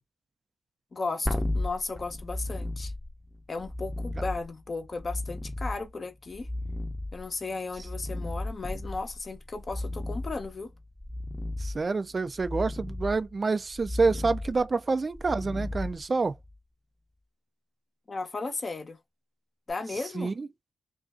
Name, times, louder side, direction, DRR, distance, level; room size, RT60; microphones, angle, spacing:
voice 1, 0.9-2.9 3.5-6.5 7.1-10.7 18.1-19.0 19.7-20.3, left 3 dB, 45° left, 0.7 m, -35 dB
sound 1, 1.3-16.6 19.7-19.8, left 1 dB, 10° left, 0.7 m, -35 dB
voice 2, 11.6-16.3 20.2-20.5, right 4 dB, 45° right, 0.3 m, -27 dB
2.5 x 2.3 x 2.4 m
supercardioid pair, 40°, 0 cm